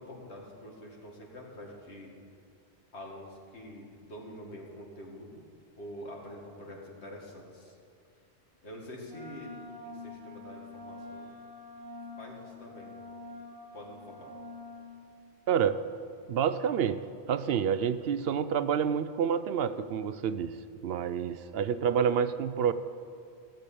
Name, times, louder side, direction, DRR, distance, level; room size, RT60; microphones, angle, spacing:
voice 1, 0.0-2.2 2.9-5.4 5.8-7.8 8.6-11.3 12.2-13.0 13.7-14.3, equal, 80° left, -1 dB, 2.3 m, -46 dB
Wind instrument woodwind instrument, 9.1-15.1, left 2 dB, 20° right, 1.7 m, -46 dB
voice 2, 15.5-15.8 16.3-17.0 17.3-20.6 20.8-22.7, right 8 dB, 70° right, 13 dB, 0.7 m, -28 dB
15.0 x 6.8 x 8.5 m, 2.3 s
omnidirectional pair, 1.1 m